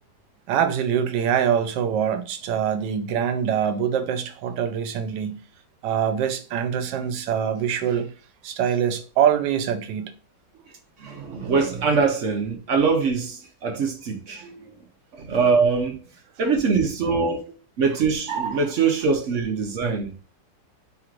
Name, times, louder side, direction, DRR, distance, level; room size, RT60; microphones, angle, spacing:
voice 1, 0.5-5.4 5.8-8.1 8.4-10.1, right 8 dB, 90° right, 1.3 m, -24 dB
voice 2, 11.0-14.7 15.1-16.0 16.4-17.4 17.8-20.1, right 5 dB, 65° right, 0.8 m, -23 dB
3.2 x 2.5 x 4.4 m
omnidirectional pair, 1.9 m